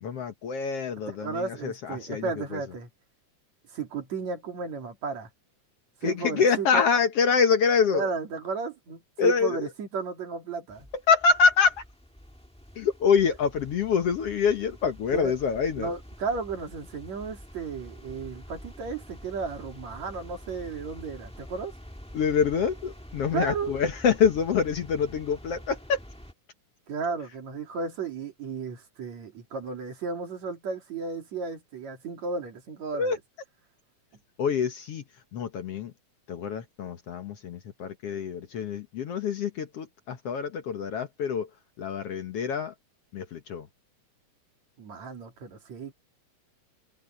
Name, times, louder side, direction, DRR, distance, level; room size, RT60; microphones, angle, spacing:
voice 1, 0.0-2.6 6.0-8.1 9.2-9.7 11.1-11.8 12.8-15.9 22.1-26.0 32.9-33.2 34.4-35.0 35.3-35.9 36.3-41.5 41.8-42.7 43.1-43.7, left 6 dB, 60° left, 2.0 m, -26 dB
voice 2, 1.2-2.9 3.7-5.3 6.0-6.8 7.9-10.9 15.1-15.3 15.8-21.7 23.3-23.7 26.9-33.2 44.8-45.9, right 5 dB, 60° right, 4.0 m, -34 dB
sound 1, 10.7-26.3, equal, 5° left, 0.8 m, -47 dB
omnidirectional pair, 3.5 m